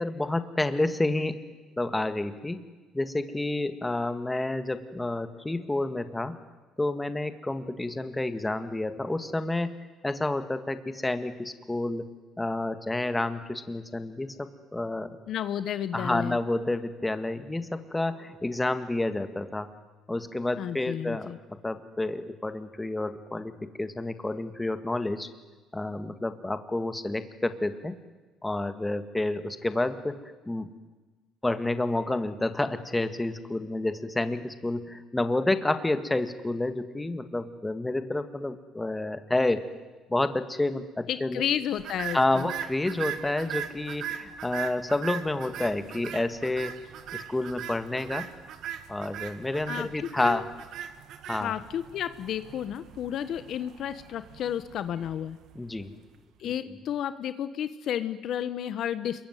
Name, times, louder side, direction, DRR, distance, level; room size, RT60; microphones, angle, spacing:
voice 1, 0.0-1.4 1.8-2.6 2.9-6.4 6.8-9.8 10.0-12.1 12.4-15.2 15.9-19.7 20.1-25.3 25.7-27.9 28.4-30.7 31.4-39.6 40.1-41.5 42.1-46.8 47.1-48.3 48.9-50.5 51.3-51.5 55.6-55.9, left 2 dB, 10° left, 10 dB, 1.8 m, -29 dB
voice 2, 15.3-16.4 20.6-21.4 41.1-42.5 49.7-50.4 51.4-55.4 56.4-59.3, left 10 dB, 60° left, 13 dB, 1.2 m, -32 dB
sound 1, 41.8-56.1, right 10 dB, 65° right, 1.9 m, -40 dB
27.0 x 22.5 x 9.3 m, 1.2 s
cardioid pair, 125°, 0 cm